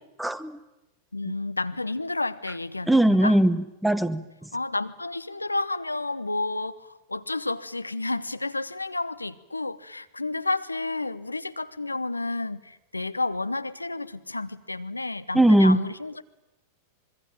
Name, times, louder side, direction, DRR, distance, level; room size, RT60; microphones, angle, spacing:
voice 1, 0.2-0.6 2.9-4.2 15.3-15.8, right 1 dB, 5° right, 16 dB, 1.1 m, -20 dB
voice 2, 1.1-3.4 4.5-16.2, left 2 dB, 85° left, 13 dB, 0.9 m, -31 dB
25.5 x 22.5 x 9.1 m, 0.96 s
figure-of-eight pair, 90°, 0 cm